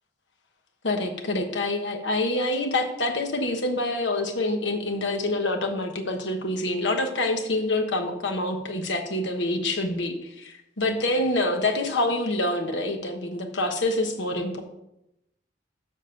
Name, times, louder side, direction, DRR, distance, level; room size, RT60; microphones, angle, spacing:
voice 1, 0.8-14.6, left 2 dB, 75° left, 4 dB, 1.2 m, -26 dB
7.4 x 6.2 x 5.3 m, 0.85 s
head